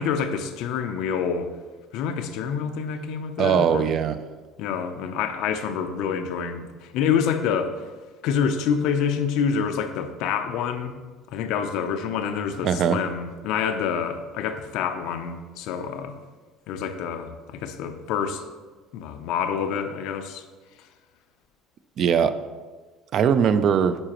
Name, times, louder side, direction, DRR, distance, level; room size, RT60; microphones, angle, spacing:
voice 1, 0.0-1.5 1.9-4.0 4.6-7.8 8.2-11.0 11.3-16.1 16.7-18.4 18.9-20.4, left 7 dB, 60° left, 0.6 m, -27 dB
voice 2, 3.4-4.2 12.6-13.0 22.0-22.3 23.1-24.0, right 7 dB, 35° right, 0.3 m, -20 dB
9.7 x 4.8 x 3.0 m
cardioid pair, 175°, 0 cm